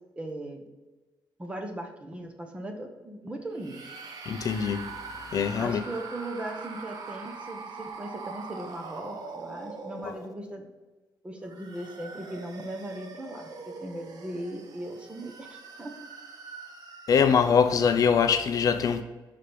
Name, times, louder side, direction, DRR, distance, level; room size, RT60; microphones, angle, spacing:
voice 1, 0.2-0.7 1.4-3.8 5.6-10.7 11.2-15.9, right 1 dB, 15° right, 0.9 m, -38 dB
sound 1, 3.5-10.6 11.3-17.8, right 4 dB, 55° right, 0.9 m, -43 dB
voice 2, 4.3-4.9 5.3-5.8 10.0-10.1 17.1-19.0, left 6 dB, 50° left, 0.4 m, -23 dB
5.7 x 5.0 x 5.1 m
wide cardioid pair, 165°, 8 cm